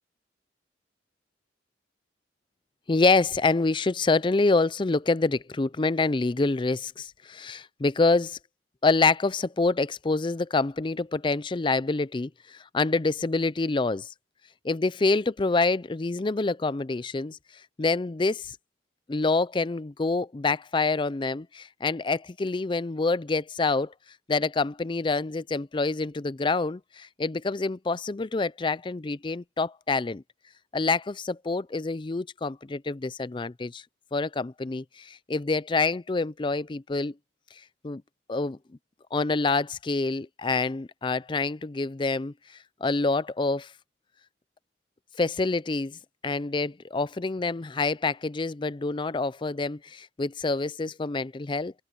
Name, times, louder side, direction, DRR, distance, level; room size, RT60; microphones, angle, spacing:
voice 1, 2.9-8.4 8.8-14.1 14.6-17.4 17.8-18.6 19.1-23.9 24.3-30.2 30.7-33.8 34.1-37.1 37.8-38.0 38.3-38.6 39.1-42.3 42.8-43.7 45.2-51.7, left 3 dB, 25° left, 0.4 m, -26 dB
open air
head